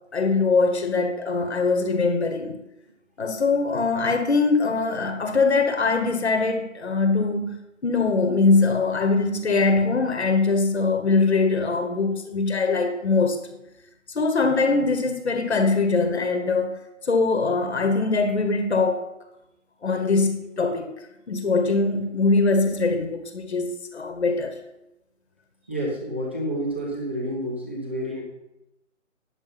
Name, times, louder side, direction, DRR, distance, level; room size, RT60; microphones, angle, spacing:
voice 1, 0.1-2.5 3.2-13.4 14.1-16.8 17.1-19.0 19.8-20.9 21.3-24.5, left 3 dB, 55° left, 1.5 m, -22 dB
voice 2, 25.7-28.2, equal, 10° right, 0.7 m, -29 dB
9.5 x 7.1 x 5.6 m
figure-of-eight pair, 150°, 40 cm